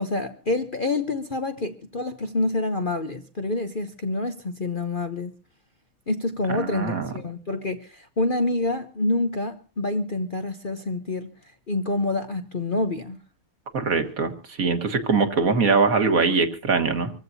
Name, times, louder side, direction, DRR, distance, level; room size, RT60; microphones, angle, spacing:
voice 1, 0.0-5.3 6.1-13.2, left 2 dB, 45° left, 0.6 m, -27 dB
voice 2, 6.5-7.1 13.7-14.3 14.6-17.1, right 4 dB, 45° right, 1.8 m, -22 dB
26.0 x 15.0 x 2.7 m
omnidirectional pair, 2.3 m